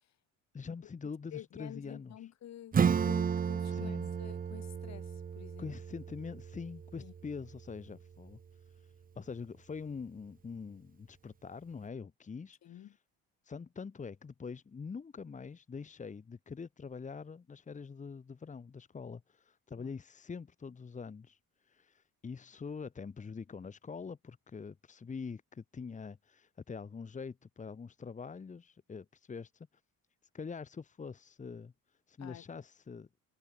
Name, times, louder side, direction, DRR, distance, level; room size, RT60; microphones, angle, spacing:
voice 1, 0.5-2.1 3.7-4.1 5.6-8.4 9.2-12.7 13.4-21.4 21.7-29.7 30.3-31.7 32.1-33.1, left 5 dB, 20° left, 2.2 m, -44 dB
voice 2, 1.3-5.7 7.0-7.1 12.6-13.0 19.8-19.9 32.2-32.4, left 11 dB, 50° left, 3.9 m, -50 dB
Acoustic guitar / Strum, 2.7-8.0, right 7 dB, 25° right, 1.0 m, -33 dB
cardioid pair, 160°, 34 cm